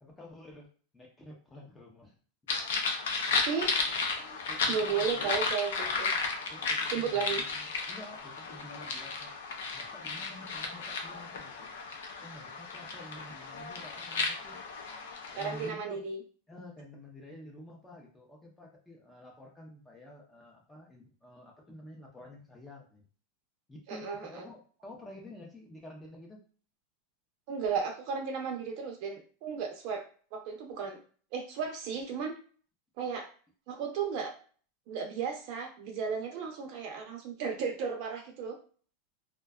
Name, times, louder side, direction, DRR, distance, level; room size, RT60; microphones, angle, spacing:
voice 1, 0.0-2.2 4.2-5.4 6.5-9.3 9.7-11.7 12.2-14.6 15.3-16.0 16.5-23.0 23.7-26.4, left 1 dB, 10° left, -1 dB, 0.5 m, -50 dB
sound 1, 2.5-15.7, left 4 dB, 90° left, 0.5 m, -34 dB
voice 2, 3.5-3.8 4.7-6.1 6.9-7.4 15.3-16.2 23.9-24.4 27.5-30.0 30.3-31.0 31.3-32.3 33.0-33.3 33.7-34.3 34.9-38.6, right 6 dB, 50° right, 3 dB, 0.6 m, -34 dB
2.5 x 2.2 x 2.3 m, 0.42 s
supercardioid pair, 155°, 0 cm